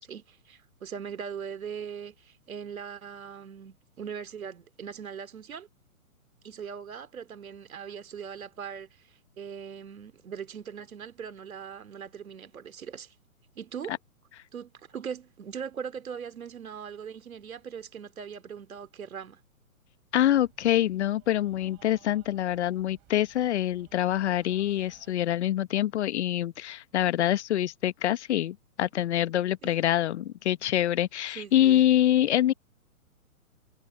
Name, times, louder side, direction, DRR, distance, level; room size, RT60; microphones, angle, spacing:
voice 1, 0.0-5.7 6.4-13.1 13.5-14.0 14.5-19.4 29.6-29.8 31.3-31.8, right 7 dB, 70° right, 2.7 m, -40 dB
voice 2, 20.1-32.5, left 12 dB, 50° left, 1.1 m, -25 dB
sound 1, 20.1-25.1, right 32 dB, 30° right, 6.5 m, -58 dB
hypercardioid pair, 135°, 43 cm